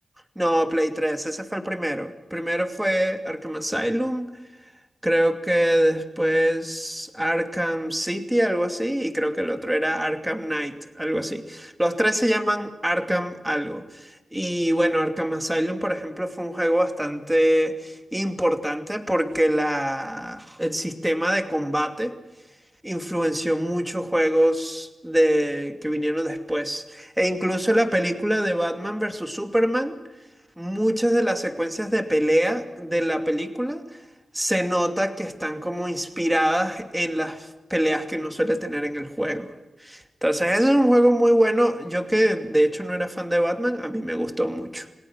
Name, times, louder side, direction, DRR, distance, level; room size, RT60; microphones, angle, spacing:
voice 1, 0.4-4.3 5.0-22.2 22.8-30.0 30.6-34.0 34.3-39.5 39.8-44.9, equal, 10° right, 6 dB, 2.7 m, -24 dB
28.5 x 18.5 x 6.0 m, 1.1 s
cardioid pair, 55°, 0 cm